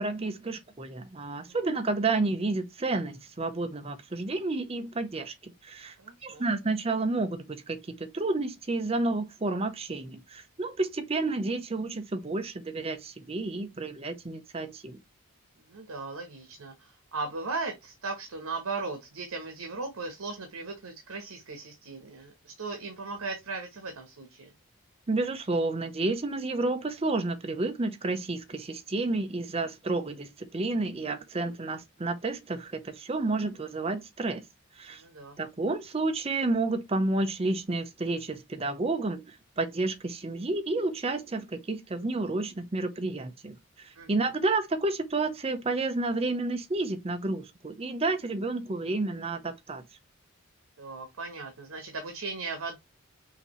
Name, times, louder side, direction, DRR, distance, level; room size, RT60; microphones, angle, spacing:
voice 1, 0.0-5.9 6.2-15.0 25.1-34.4 34.8-35.0 35.4-49.8, right 2 dB, 25° right, 0.5 m, -30 dB
voice 2, 6.0-6.4 15.6-24.5 34.9-35.4 44.0-44.1 50.8-52.8, right 3 dB, 80° right, 1.0 m, -37 dB
5.7 x 2.7 x 3.0 m
head